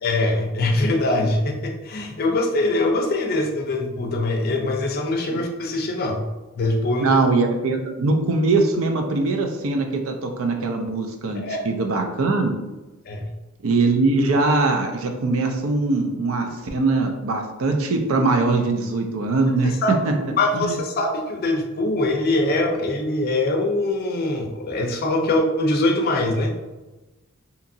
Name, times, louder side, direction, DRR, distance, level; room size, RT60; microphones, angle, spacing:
voice 1, 0.0-6.3 6.6-7.2 11.3-11.6 13.1-13.3 19.6-19.9 20.4-26.5, left 2 dB, 45° left, 2 dB, 0.4 m, -23 dB
voice 2, 7.0-12.6 13.6-20.1 20.5-20.8, right 3 dB, 75° right, 4 dB, 0.4 m, -22 dB
2.8 x 2.4 x 2.6 m, 1.1 s
head